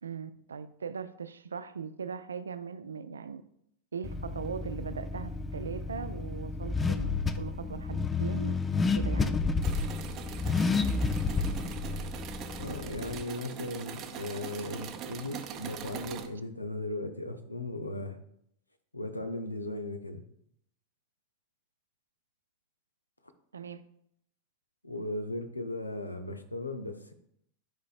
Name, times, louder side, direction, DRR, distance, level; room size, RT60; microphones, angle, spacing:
voice 1, 0.0-3.4 3.9-8.6 9.0-9.4 14.6-14.7 23.5-23.8, right 6 dB, 70° right, 12 dB, 0.4 m, -39 dB
Car / Accelerating revving vroom, 4.0-13.2, left 4 dB, 15° left, 0.4 m, -31 dB
sound 1, 9.6-16.3, right 9 dB, 35° right, 0.7 m, -42 dB
voice 2, 12.6-18.2 18.9-20.2 24.8-27.1, left 2 dB, 85° left, 7 dB, 0.7 m, -37 dB
11.5 x 5.1 x 2.5 m, 0.71 s
figure-of-eight pair, 90°, 0 cm